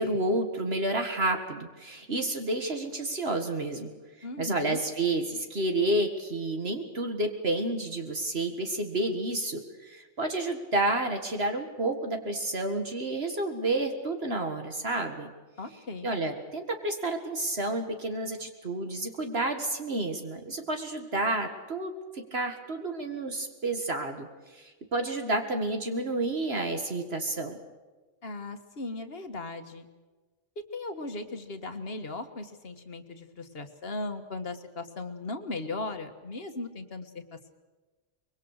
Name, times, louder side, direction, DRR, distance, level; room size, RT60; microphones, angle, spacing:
voice 1, 0.0-3.9 4.2-15.3 16.0-27.6, right 2 dB, 55° right, 5 dB, 2.1 m, -30 dB
voice 2, 4.2-4.8 15.6-16.1 28.2-29.9 30.6-37.5, left 2 dB, 55° left, 8 dB, 1.8 m, -37 dB
24.5 x 22.5 x 6.6 m, 1.3 s
omnidirectional pair, 1.2 m